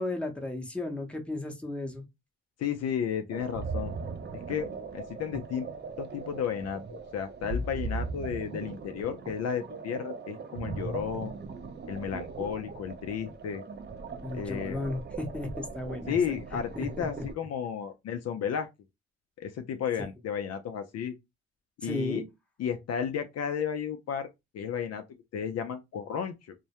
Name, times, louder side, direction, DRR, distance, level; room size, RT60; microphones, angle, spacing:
voice 1, 0.0-2.0 14.2-16.1 16.8-17.2 21.8-22.2, left 2 dB, 5° left, 0.7 m, -34 dB
voice 2, 2.6-3.9 4.5-4.7 4.9-5.7 6.0-11.3 11.9-13.6 14.3-14.9 16.1-18.7 19.4-21.1 21.8-22.2 22.6-24.3 24.5-25.0 25.3-26.5, left 8 dB, 60° left, 0.4 m, -33 dB
sound 1, 3.3-17.3, right 4 dB, 35° right, 0.5 m, -39 dB
2.2 x 2.0 x 2.8 m
cardioid pair, 75°, 29 cm